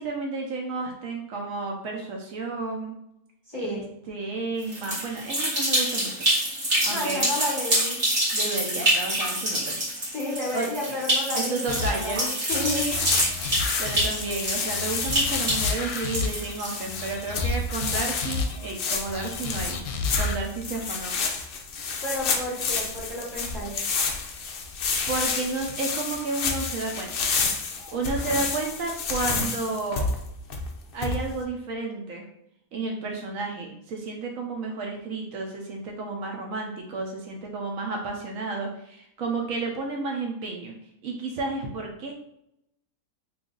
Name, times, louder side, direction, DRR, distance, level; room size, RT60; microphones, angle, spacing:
voice 1, 0.0-3.0 3.6-6.2 6.8-7.3 8.3-9.8 10.5-10.9 11.3-12.2 13.4-13.5 13.8-19.8 20.2-21.1 24.2-24.4 25.1-27.3 27.6-30.1 30.9-32.2 32.7-40.7 41.0-42.2, right 3 dB, 70° right, 1 dB, 1.0 m, -32 dB
voice 2, 3.5-3.8 6.9-8.0 10.1-13.0 22.0-23.8, left 1 dB, 20° left, -6 dB, 0.9 m, -31 dB
sound 1, 4.6-17.1, right 1 dB, 50° right, 1.8 m, -27 dB
sound 2, 11.7-12.2 12.5-14.4 14.7-16.5 16.9-18.7 19.1-20.4, left 5 dB, 90° left, 1.1 m, -32 dB
sound 3, 12.5-31.4, left 4 dB, 70° left, 0.5 m, -30 dB
3.2 x 2.5 x 3.7 m, 0.78 s
omnidirectional pair, 1.5 m